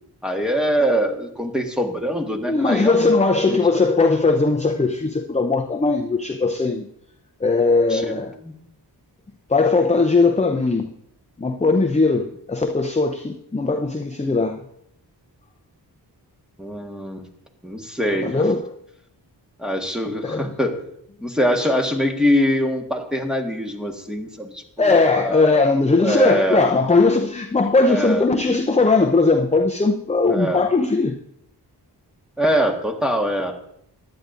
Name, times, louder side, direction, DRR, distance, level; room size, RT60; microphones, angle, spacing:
voice 1, 0.2-3.6 7.9-8.1 8.4-8.5 16.6-17.3 17.6-18.3 19.6-20.8 21.2-25.6 26.0-26.6 27.8-28.2 30.3-30.6 32.4-33.5, equal, ahead, 1.5 m, -23 dB
voice 2, 2.4-6.9 7.4-8.3 9.5-10.9 11.4-14.6 18.2-18.8 20.2-20.5 24.8-31.1, left 3 dB, 15° left, 0.6 m, -19 dB
15.0 x 10.5 x 2.5 m
wide cardioid pair, 70°, 41 cm